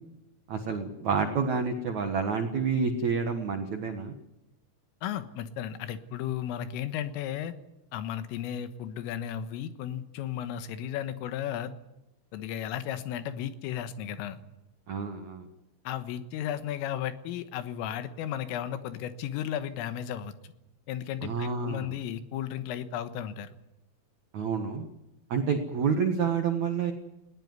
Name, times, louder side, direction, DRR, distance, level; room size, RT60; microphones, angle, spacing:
voice 1, 0.5-4.1 14.9-15.5 21.2-21.9 24.3-24.8 25.3-26.9, right 5 dB, 75° right, 5 dB, 1.7 m, -29 dB
voice 2, 5.0-7.5 7.9-11.7 12.3-14.4 15.9-20.5 20.9-23.5, left 10 dB, 85° left, 11 dB, 3.9 m, -34 dB
20.0 x 18.0 x 9.5 m, 0.92 s
omnidirectional pair, 5.8 m